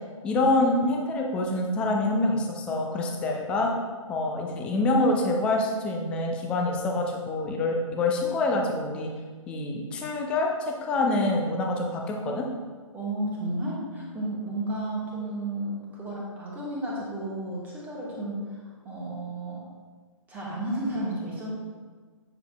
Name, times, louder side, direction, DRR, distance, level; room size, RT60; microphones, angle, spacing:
voice 1, 0.2-3.7 4.1-9.1 9.5-12.5, left 2 dB, 5° left, 1 dB, 0.4 m, -26 dB
voice 2, 12.9-19.6 20.3-21.5, right 1 dB, 10° right, -5 dB, 1.3 m, -32 dB
8.9 x 6.5 x 2.3 m, 1.5 s
figure-of-eight pair, 135°, 17 cm